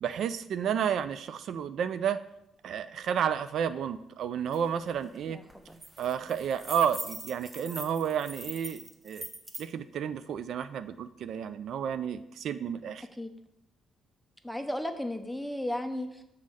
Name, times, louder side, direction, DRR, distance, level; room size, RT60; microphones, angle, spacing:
voice 1, 0.0-2.2 2.6-5.4 6.0-9.3 9.6-13.1, right 8 dB, 70° right, 13 dB, 0.3 m, -31 dB
sound 1, 4.5-4.6 4.9-5.2 5.5-9.7, right 1 dB, 20° right, 1.0 m, -42 dB
voice 2, 5.3-5.8 13.2-13.3 14.4-16.2, left 1 dB, ahead, 7 dB, 0.8 m, -35 dB
6.2 x 4.2 x 6.2 m, 0.84 s
cardioid pair, 90°, 0 cm